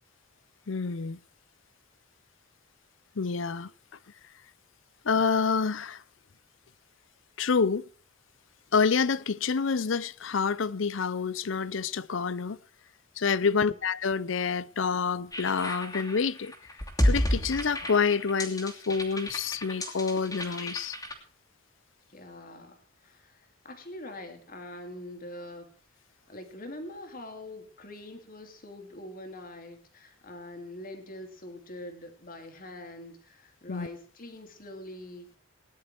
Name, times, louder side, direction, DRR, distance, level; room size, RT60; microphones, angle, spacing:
voice 1, 0.7-1.2 3.2-3.7 5.0-6.0 7.4-7.9 8.7-12.6 13.2-16.5 17.0-21.0 33.7-33.9, left 5 dB, 65° left, 0.6 m, -27 dB
voice 2, 13.4-13.8 22.1-25.7 26.3-35.3, left 1 dB, 45° left, 2.9 m, -44 dB
sound 1, 15.3-21.1, equal, 15° left, 2.8 m, -31 dB
18.5 x 11.0 x 4.5 m
head